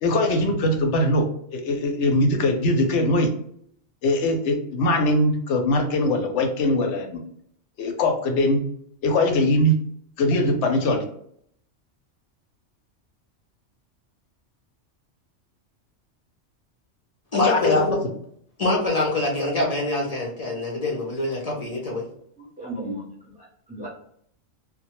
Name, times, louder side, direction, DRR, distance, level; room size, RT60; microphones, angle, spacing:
voice 1, 0.0-3.3 4.0-7.2 7.8-8.6 9.0-9.8 10.2-11.0 17.4-18.0, left 1 dB, 75° left, 4 dB, 0.8 m, -21 dB
voice 2, 17.3-18.0 18.6-22.0, left 2 dB, 50° left, -2 dB, 0.5 m, -24 dB
voice 3, 22.4-23.9, right 1 dB, 10° right, -6 dB, 0.5 m, -36 dB
2.1 x 2.0 x 2.9 m, 0.66 s
omnidirectional pair, 1.3 m